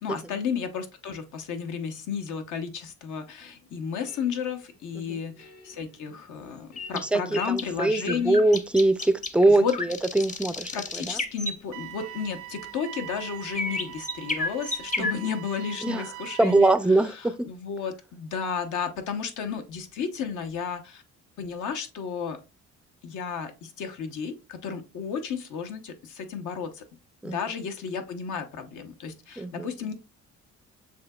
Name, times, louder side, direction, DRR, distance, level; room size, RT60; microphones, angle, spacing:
voice 1, 0.0-8.4 9.5-9.7 10.7-16.7 17.2-21.0 21.4-22.4 23.0-26.8 27.2-29.9, left 6 dB, 80° left, 0.9 m, -33 dB
sound 1, 3.4-13.9, left 3 dB, 55° left, 1.7 m, -56 dB
sound 2, 6.8-11.6 13.5-15.1, left 2 dB, 25° left, 0.6 m, -32 dB
voice 2, 7.0-11.2 15.0-15.1 15.8-16.1 16.4-17.5 27.2-27.4 29.4-29.7, right 2 dB, 5° right, 0.3 m, -23 dB
sound 3, 11.7-16.7, right 18 dB, 85° right, 0.6 m, -42 dB
6.9 x 2.8 x 2.3 m
cardioid pair, 90°, 30 cm